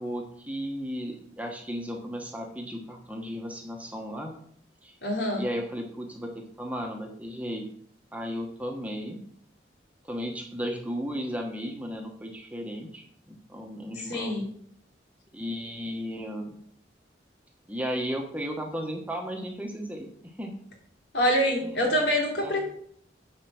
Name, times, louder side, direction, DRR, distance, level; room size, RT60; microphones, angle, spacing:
voice 1, 0.0-4.3 4.8-4.9 5.4-7.6 8.1-9.2 10.0-14.3 15.3-16.6 17.7-20.5 21.6-21.7 22.4-22.6, equal, 10° right, 2 dB, 1.2 m, -35 dB
voice 2, 5.0-5.4 14.0-14.4 21.1-22.6, equal, 75° left, -1 dB, 3.4 m, -25 dB
9.2 x 4.9 x 7.1 m, 0.64 s
head